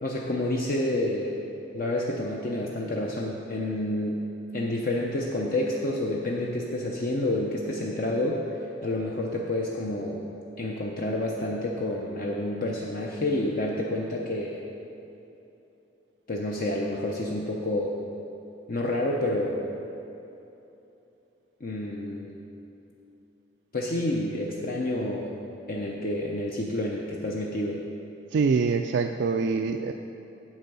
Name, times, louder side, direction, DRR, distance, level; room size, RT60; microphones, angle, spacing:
voice 1, 0.0-1.4 1.7-4.2 4.5-10.2 10.6-14.6 16.3-17.9 18.7-19.7 21.6-22.3 23.7-25.3 25.7-27.8, left 1 dB, 50° left, -2 dB, 0.7 m, -29 dB
voice 2, 28.3-29.9, right 5 dB, 65° right, 5 dB, 0.3 m, -24 dB
8.2 x 8.0 x 5.4 m, 2.9 s
head